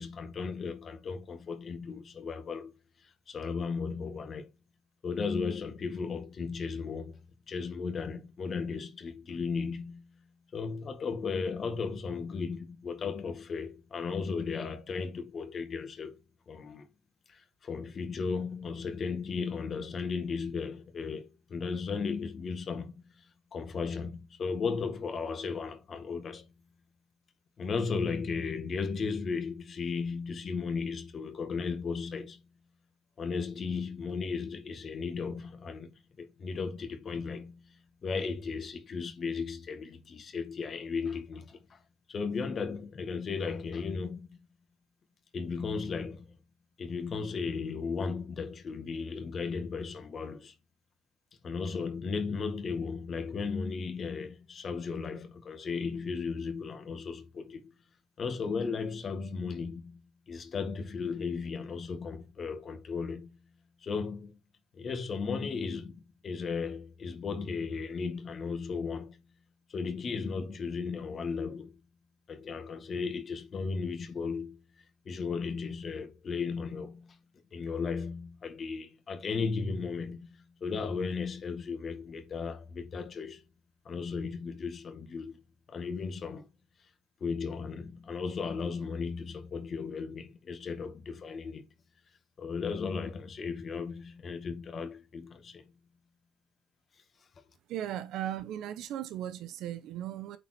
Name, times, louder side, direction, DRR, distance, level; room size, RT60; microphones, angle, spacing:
voice 1, 0.0-2.7 3.0-4.5 5.0-7.2 7.5-10.2 10.5-16.2 16.5-16.9 17.3-23.0 23.5-26.5 27.6-32.4 33.2-37.8 38.0-41.8 42.1-44.3 45.3-46.4 46.8-50.5 51.4-57.7 58.2-63.4 63.8-64.4 64.7-69.2 69.7-71.8 72.3-74.6 75.1-77.2 77.5-83.4 83.9-85.4 85.7-86.5 87.2-91.7 92.4-95.7, left 5 dB, 45° left, 1.9 m, -35 dB
voice 2, 97.7-100.4, right 11 dB, 70° right, 1.0 m, -37 dB
8.3 x 4.3 x 4.5 m
supercardioid pair, 90°, 0 cm